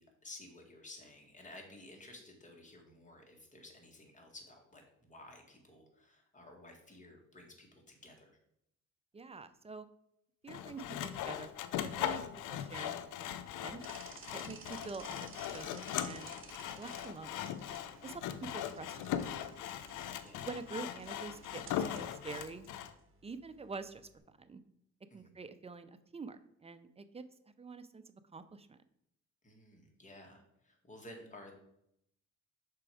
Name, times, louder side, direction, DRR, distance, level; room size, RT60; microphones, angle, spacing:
voice 1, 0.0-8.4 20.2-20.5 25.1-25.3 29.4-31.5, left 1 dB, 25° left, 1 dB, 1.8 m, -54 dB
voice 2, 9.1-9.9 10.4-11.5 11.8-13.8 14.3-16.4 16.8-17.5 18.0-19.5 20.4-22.7 23.2-24.6 25.1-27.2 27.6-28.8, right 4 dB, 20° right, 11 dB, 0.5 m, -47 dB
Sawing, 10.5-22.9, left 10 dB, 85° left, 0.6 m, -39 dB
sound 1, 13.8-24.2, right 4 dB, 45° right, 1.4 m, -56 dB
6.1 x 4.4 x 4.8 m, 0.77 s
cardioid pair, 90°, 30 cm